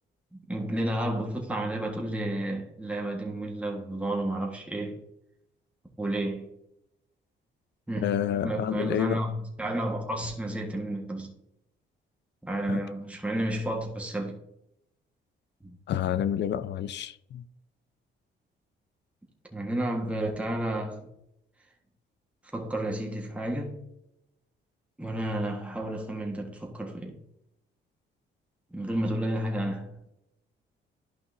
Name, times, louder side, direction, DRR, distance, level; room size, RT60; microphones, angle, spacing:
voice 1, 0.3-5.0 6.0-6.5 7.9-8.1 8.4-11.3 12.4-14.4 15.6-15.8 19.5-21.1 22.5-23.8 25.0-27.2 28.7-29.9, right 1 dB, 5° right, 1.6 m, -31 dB
voice 2, 8.0-9.2 12.7-12.8 15.9-17.4, left 10 dB, 60° left, 0.5 m, -29 dB
11.5 x 5.5 x 2.8 m
cardioid pair, 90°, 20 cm